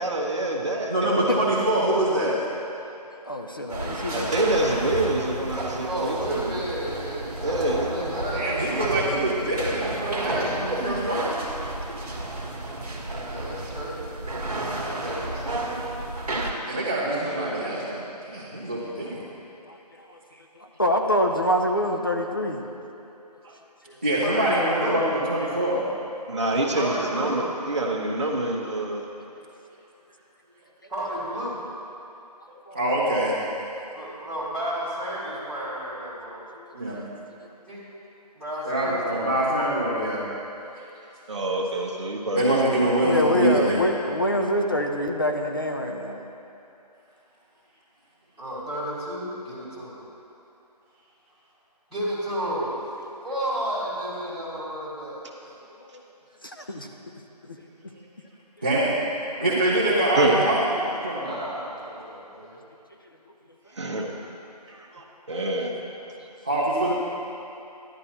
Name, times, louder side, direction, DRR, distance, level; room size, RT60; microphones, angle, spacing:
voice 1, 0.0-1.3 3.9-6.7 7.4-8.1 17.1-17.6 23.4-23.6 26.3-29.0 32.5-32.6 41.3-43.1 60.2-60.4 63.7-64.1 64.7-65.7, right 1 dB, 45° right, -1 dB, 1.1 m, -27 dB
voice 2, 0.9-2.4 8.3-11.4 16.6-19.2 24.0-25.8 32.7-33.4 36.7-37.0 38.7-40.3 40.8-40.9 42.4-43.8 58.6-59.0 59.4-61.4 66.4-66.9, right 1 dB, 15° right, -9 dB, 0.5 m, -24 dB
voice 3, 3.2-4.4 12.2-12.3 19.7-22.6 23.9-24.0 32.7-32.8 34.0-34.1 36.5-36.6 43.0-46.2 53.1-53.2 55.8-56.0 56.4-56.9 57.5-57.6 61.2-61.3, left 1 dB, 35° left, 2 dB, 0.5 m, -26 dB
sound 1, 3.7-16.5, right 2 dB, 60° right, 1.5 m, -32 dB
voice 4, 5.9-8.8 13.0-14.2 14.9-15.8 16.1-16.3 24.2-25.0 26.8-27.5 30.9-31.7 33.9-36.5 37.7-37.8 38.4-39.7 40.0-40.1 48.4-50.0 51.9-52.7 53.2-55.5 59.3-59.4 59.9-60.0 61.2-62.6, right 1 dB, ahead, -17 dB, 2.0 m, -32 dB
11.0 x 11.0 x 2.9 m, 2.8 s
figure-of-eight pair, 170°, 21 cm